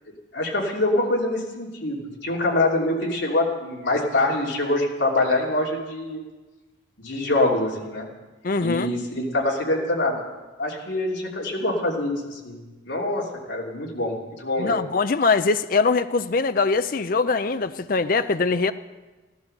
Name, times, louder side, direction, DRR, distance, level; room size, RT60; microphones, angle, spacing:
voice 1, 0.3-6.2 7.0-8.1 8.6-10.2 10.6-12.6 12.8-14.8, left 2 dB, 65° left, 3.0 m, -25 dB
voice 2, 8.4-8.9 14.6-18.7, left 4 dB, 45° left, 0.5 m, -22 dB
16.0 x 12.5 x 6.7 m
head